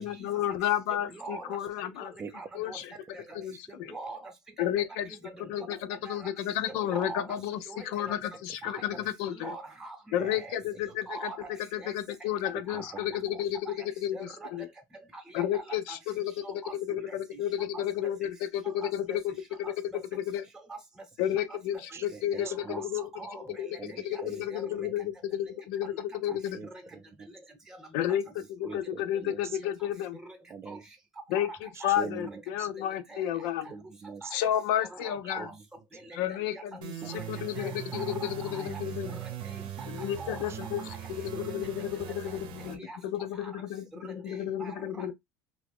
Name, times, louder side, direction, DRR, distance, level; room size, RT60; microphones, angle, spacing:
voice 1, 0.0-2.1 2.5-2.8 3.3-3.9 4.6-5.1 5.4-7.6 7.8-9.5 10.1-11.1 11.7-14.7 15.3-16.3 16.9-19.3 19.6-19.7 20.1-20.4 21.2-23.1 23.6-23.7 24.0-26.6 27.9-30.2 31.3-32.3 32.5-33.7 34.3-35.5 36.1-39.2 39.9-40.8 41.2-45.1, left 11 dB, 85° left, 0.5 m, -32 dB
voice 2, 1.1-1.6 2.0-2.1 2.3-2.8 3.1-3.4 3.9-4.2 5.3-5.7 6.0-6.3 6.7-7.2 7.7-8.1 8.6-9.0 9.3-10.6 11.1-11.9 12.7-13.0 13.3-13.7 14.1-14.5 15.1-16.0 16.4-16.7 17.0-17.4 17.7-17.8 18.8-19.2 19.6-20.0 22.3-22.8 23.2-23.6 23.9-24.2 24.5-24.9 25.9-26.0 28.1-28.2 30.2-30.4 30.7-30.8 31.3-31.4 33.1-33.2 34.2-34.4 34.8-35.5 37.2-37.3 37.6-38.8 39.1-39.2 40.2-40.5 42.3-42.4 42.7-43.0 43.4-43.5 44.0-45.1, right 3 dB, 5° right, 0.8 m, -43 dB
voice 3, 8.6-9.1 10.2-10.4 12.5-13.0 21.9-22.9 23.5-24.5 24.8-24.9 26.3-27.3 28.6-29.6 30.5-30.8 31.7-32.7 33.7-34.3 35.2-35.6 37.0-37.1 37.6-37.7 40.5-40.6, right 5 dB, 30° right, 0.5 m, -44 dB
sound 1, 36.8-42.8, right 9 dB, 60° right, 0.7 m, -40 dB
2.8 x 2.5 x 3.4 m
cardioid pair, 120°, 10 cm